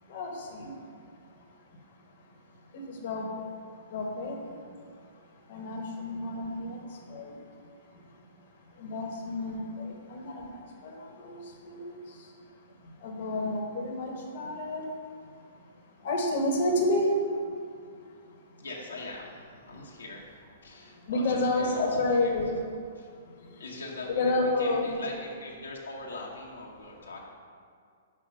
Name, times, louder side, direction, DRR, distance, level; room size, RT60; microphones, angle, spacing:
voice 1, 0.0-18.6 20.7-22.6 22.9-23.6 24.2-25.0, left 2 dB, 55° left, 0 dB, 1.1 m, -32 dB
voice 2, 18.6-20.3 20.6-22.4 23.0-23.1 23.6-27.3, left 2 dB, 85° left, -3 dB, 1.1 m, -41 dB
5.7 x 4.8 x 5.0 m, 2.2 s
hypercardioid pair, 120°, 0 cm